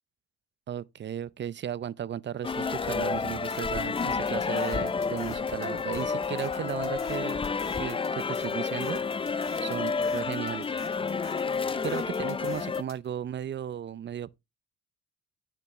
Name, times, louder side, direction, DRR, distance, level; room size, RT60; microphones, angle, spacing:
voice 1, 0.7-7.4 7.8-9.3 9.6-10.9 11.8-14.4, right 9 dB, 40° right, 0.5 m, -35 dB
sound 1, 2.4-12.8, left 5 dB, 20° left, 0.4 m, -30 dB
sound 2, 3.5-13.1, left 7 dB, 60° left, 2.1 m, -49 dB
9.9 x 6.8 x 3.0 m
cardioid pair, 90°, 30 cm